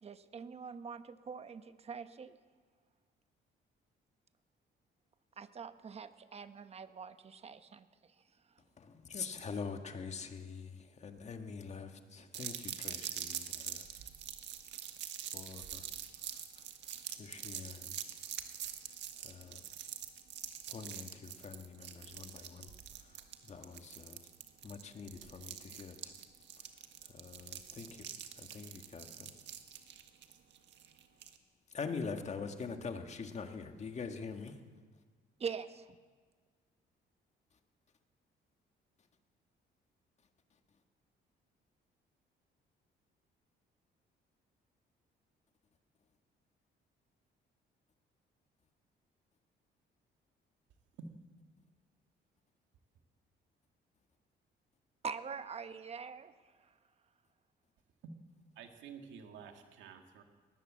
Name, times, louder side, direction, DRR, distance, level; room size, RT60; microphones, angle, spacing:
voice 1, 0.0-2.4 5.4-8.6 35.4-36.0 55.0-56.8, right 6 dB, 35° right, 11 dB, 1.0 m, -44 dB
voice 2, 8.8-13.8 15.3-15.9 16.2-18.0 18.6-18.7 19.2-19.6 20.7-24.2 24.6-26.1 26.6-26.7 27.0-29.3 31.7-34.6, left 5 dB, 35° left, 6 dB, 1.8 m, -45 dB
sound 1, 12.3-31.4, right 9 dB, 75° right, 1.7 m, -45 dB
voice 3, 58.6-60.2, right 5 dB, 90° right, 5 dB, 2.2 m, -50 dB
19.0 x 19.0 x 7.5 m, 1.5 s
cardioid pair, 125°, 19 cm